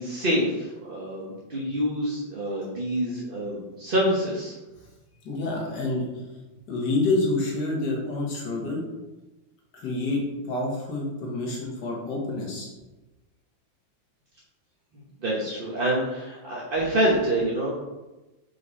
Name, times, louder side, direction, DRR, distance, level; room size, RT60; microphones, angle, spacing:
voice 1, 0.0-4.5 15.2-17.7, right 1 dB, 40° right, -5 dB, 0.8 m, -26 dB
voice 2, 5.2-6.2 6.7-8.8 9.7-12.7, left 2 dB, 65° left, -2 dB, 2.0 m, -28 dB
5.0 x 4.7 x 4.1 m, 1.1 s
omnidirectional pair, 2.1 m